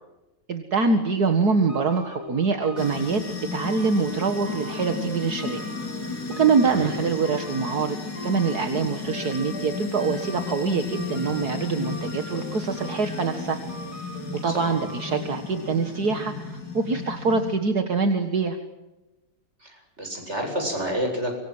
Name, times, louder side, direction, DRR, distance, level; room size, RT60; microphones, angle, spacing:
voice 1, 0.5-3.2 3.5-5.6 6.4-8.0 8.2-13.6 14.4-18.6, right 4 dB, 55° right, 7 dB, 2.2 m, -24 dB
sound 1, 1.7-16.4, equal, 15° left, 2.9 m, -40 dB
sound 2, 2.8-17.6, left 5 dB, 70° left, 4.6 m, -34 dB
voice 2, 19.6-21.3, equal, 35° right, 3 dB, 8.2 m, -29 dB
25.0 x 24.5 x 7.9 m, 1.0 s
omnidirectional pair, 2.0 m